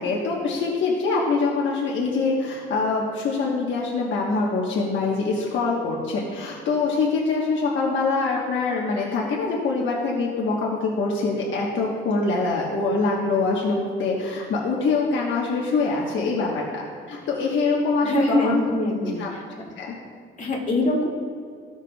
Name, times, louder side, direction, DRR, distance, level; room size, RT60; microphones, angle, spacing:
voice 1, 0.0-16.8 17.1-18.6 19.2-19.3 19.8-19.9, left 3 dB, 70° left, -3 dB, 1.2 m, -24 dB
voice 2, 18.0-19.4 20.4-21.1, left 2 dB, 40° left, -3 dB, 2.2 m, -23 dB
15.0 x 5.8 x 2.3 m, 2.2 s
cardioid pair, 90°, 20 cm